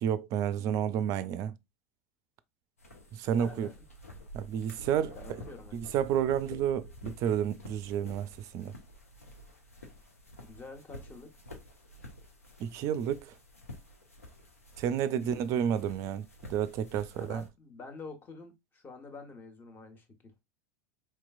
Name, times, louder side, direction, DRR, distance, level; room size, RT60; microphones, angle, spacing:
voice 1, 0.0-1.5 3.1-3.7 4.3-5.4 5.7-8.7 12.6-13.3 14.8-17.4, right 9 dB, 45° right, 0.4 m, -31 dB
sound 1, 2.8-17.5, equal, 90° left, 0.9 m, -50 dB
voice 2, 3.3-3.7 5.1-5.8 10.4-11.3 15.2-15.5 17.2-20.3, left 3 dB, 25° left, 1.3 m, -47 dB
4.5 x 3.0 x 2.3 m
figure-of-eight pair, 85°, 8 cm